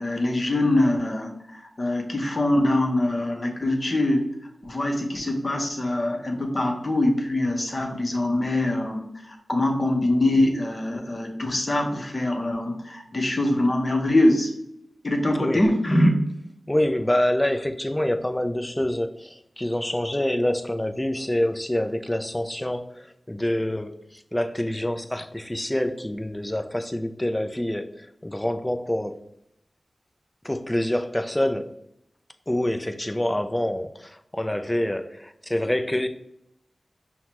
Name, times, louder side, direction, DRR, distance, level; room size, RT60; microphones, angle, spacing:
voice 1, 0.0-4.3 4.6-14.5 15.0-16.1, left 1 dB, 45° left, 0.8 m, -23 dB
voice 2, 16.7-29.2 30.4-31.8 32.5-36.1, left 1 dB, 15° left, 0.4 m, -26 dB
5.6 x 2.2 x 2.9 m
cardioid pair, 40°, 0 cm